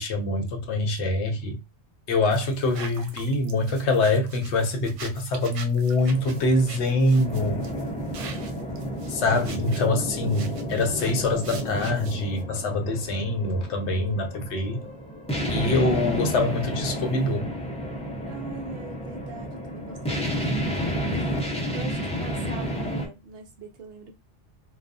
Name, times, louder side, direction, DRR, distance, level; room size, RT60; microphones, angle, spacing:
voice 1, 0.0-1.6 2.1-7.6 9.1-14.8 15.5-17.5, left 2 dB, 70° left, 0.9 m, -24 dB
sound 1, 2.3-12.4, right 5 dB, 85° right, 0.9 m, -43 dB
sound 2, 6.0-23.1, equal, 5° left, 0.5 m, -31 dB
voice 2, 18.3-21.3 21.7-24.1, right 4 dB, 60° right, 0.7 m, -43 dB
2.4 x 2.3 x 2.5 m
omnidirectional pair, 1.2 m